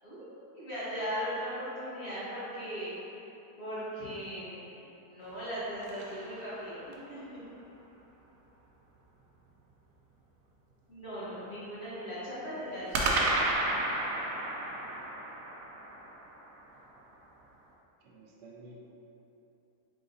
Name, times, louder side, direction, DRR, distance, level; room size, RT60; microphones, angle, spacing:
voice 1, 0.0-2.9 3.6-7.4 10.9-13.1, equal, 45° left, -11 dB, 1.3 m, -38 dB
sound 1, 5.2-7.1 12.9-17.2, right 2 dB, 70° right, 0.9 m, -33 dB
voice 2, 14.0-14.5 18.0-18.9, right 1 dB, 85° right, -2 dB, 1.2 m, -53 dB
3.9 x 3.9 x 2.6 m, 3.0 s
omnidirectional pair, 1.7 m